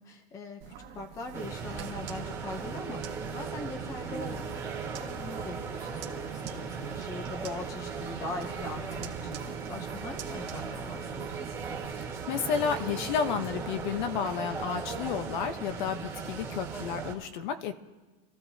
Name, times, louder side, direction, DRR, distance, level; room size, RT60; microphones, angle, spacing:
voice 1, 0.0-11.5, left 2 dB, 10° left, 6 dB, 0.7 m, -41 dB
sound 1, 0.6-11.9, right 9 dB, 35° right, 1.6 m, -48 dB
sound 2, 1.3-17.1, right 5 dB, 10° right, 1.7 m, -37 dB
voice 2, 12.3-17.7, left 7 dB, 50° left, 9 dB, 1.0 m, -31 dB
28.5 x 14.5 x 2.8 m, 1.2 s
supercardioid pair, 175°, 32 cm